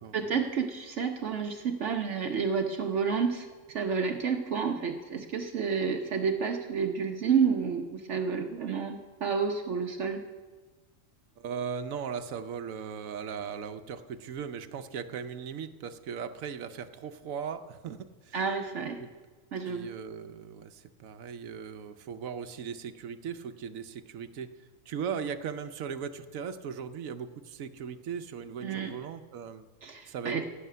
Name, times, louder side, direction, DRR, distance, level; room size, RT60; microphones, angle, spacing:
voice 1, 0.1-10.2 18.3-19.0 19.5-19.9 28.6-28.9 29.8-30.5, right 6 dB, 65° right, 4 dB, 1.1 m, -30 dB
voice 2, 11.4-18.0 18.2-18.4 19.0-19.1 19.7-24.5 24.9-29.7 30.1-30.5, right 7 dB, 85° right, 10 dB, 1.2 m, -38 dB
16.5 x 6.6 x 9.3 m, 1.3 s
omnidirectional pair, 1.4 m